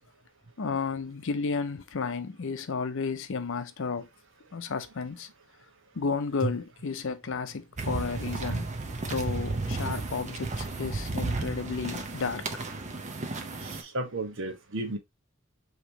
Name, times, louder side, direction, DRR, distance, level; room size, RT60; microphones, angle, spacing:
voice 1, 0.6-4.1 4.5-5.3 6.0-8.7 9.1-12.4, left 5 dB, 65° left, 0.6 m, -32 dB
sound 1, 7.8-13.8, right 3 dB, 35° right, 0.7 m, -33 dB
voice 2, 13.6-15.0, right 2 dB, 65° right, 1.1 m, -33 dB
5.0 x 3.0 x 2.8 m
head